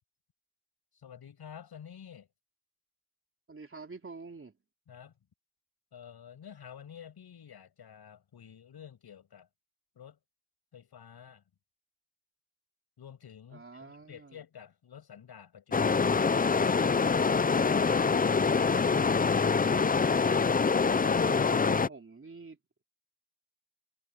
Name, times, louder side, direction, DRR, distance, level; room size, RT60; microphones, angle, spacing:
voice 1, 0.9-2.3 4.9-5.1 5.9-9.5 10.0-10.2 10.7-11.4 13.0-17.2, left 8 dB, 85° left, 7.1 m, -50 dB
voice 2, 3.5-4.5 13.5-14.4 21.0-22.6, right 4 dB, 35° right, 3.5 m, -46 dB
sound 1, 15.7-21.9, left 5 dB, 25° left, 0.5 m, -25 dB
cardioid pair, 90°, 38 cm